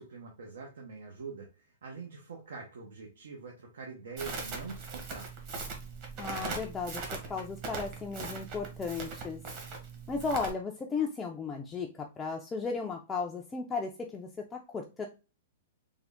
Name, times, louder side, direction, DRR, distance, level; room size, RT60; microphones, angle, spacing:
voice 1, 0.0-5.3, right 4 dB, 85° right, 1 dB, 0.8 m, -44 dB
Crackle, 4.2-10.5, right 4 dB, 35° right, 1.0 m, -40 dB
voice 2, 6.2-9.4 10.1-15.1, left 4 dB, 15° left, 1 dB, 0.4 m, -35 dB
3.6 x 2.1 x 3.4 m, 0.30 s
hypercardioid pair, 150°, 0 cm